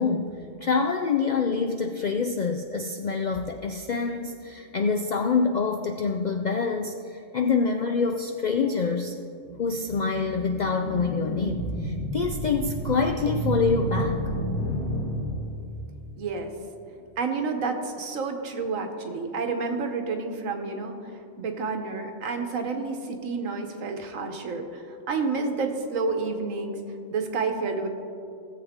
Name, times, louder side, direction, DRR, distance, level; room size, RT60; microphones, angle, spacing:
voice 1, 0.0-9.1 9.6-14.2, left 5 dB, 70° left, 5 dB, 0.4 m, -26 dB
sound 1, 9.4-15.8, right 1 dB, 5° left, 2.2 m, -31 dB
voice 2, 16.2-16.5 17.2-21.1 21.4-26.8 27.1-27.9, right 4 dB, 90° right, 5 dB, 1.4 m, -29 dB
17.0 x 7.6 x 3.6 m, 2.5 s
omnidirectional pair, 1.3 m